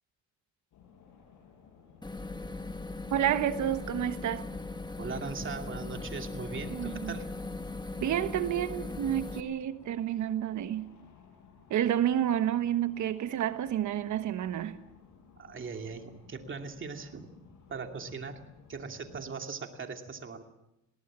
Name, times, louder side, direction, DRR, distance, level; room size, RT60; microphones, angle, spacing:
sound 1, 0.7-19.2, left 6 dB, 75° left, 5.9 m, -57 dB
sound 2, 2.0-9.4, left 2 dB, 15° left, 1.5 m, -39 dB
voice 1, 3.1-4.5 6.7-7.2 8.0-10.9 11.7-14.8, right 11 dB, 70° right, 1.2 m, -30 dB
voice 2, 5.0-7.3 15.4-17.3 17.7-18.4 18.7-20.4, right 5 dB, 40° right, 2.6 m, -39 dB
20.5 x 17.5 x 7.4 m
cardioid pair, 90°, 30 cm